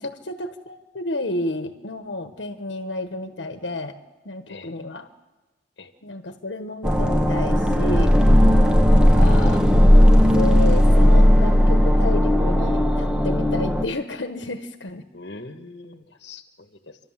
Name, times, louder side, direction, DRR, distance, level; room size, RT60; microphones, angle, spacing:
voice 1, 0.0-4.0 4.2-5.1 6.0-8.2 8.9-9.6 10.3-15.0, left 2 dB, 85° left, 7 dB, 1.3 m, -31 dB
sound 1, 6.8-13.8, equal, 5° right, 1.1 m, -16 dB
voice 2, 15.1-17.0, left 3 dB, 70° left, 8 dB, 1.5 m, -42 dB
29.0 x 12.5 x 7.4 m, 1.2 s
head